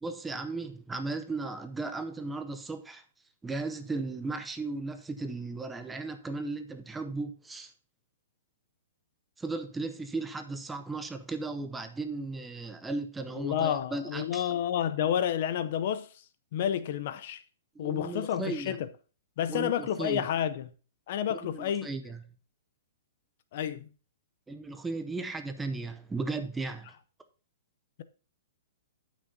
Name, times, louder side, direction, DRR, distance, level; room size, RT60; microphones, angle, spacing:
voice 1, 0.0-3.0 3.4-7.7 9.4-14.5 17.8-18.8 19.5-20.3 21.3-22.2 24.5-26.9, right 3 dB, 5° right, 0.6 m, -36 dB
voice 2, 13.3-16.1 16.5-17.4 17.8-18.9 19.4-20.7 21.1-21.9 23.5-23.9, left 10 dB, 45° left, 0.6 m, -30 dB
15.0 x 6.2 x 2.7 m
hypercardioid pair, 160°, 0 cm